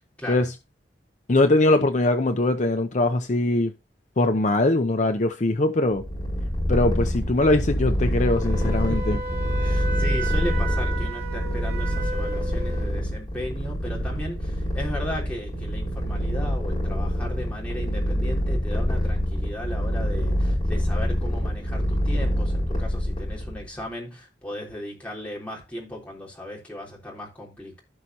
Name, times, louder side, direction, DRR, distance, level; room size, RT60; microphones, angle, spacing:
voice 1, 1.3-3.7 4.2-6.0 6.7-9.2, left 2 dB, 40° left, 0.6 m, -21 dB
Purr, 6.0-23.7, equal, 25° left, 4.4 m, -26 dB
Wind instrument woodwind instrument, 8.2-12.9, right 3 dB, 55° right, 4.2 m, -34 dB
voice 2, 8.9-27.8, left 1 dB, 10° left, 3.5 m, -36 dB
16.0 x 5.3 x 2.9 m
head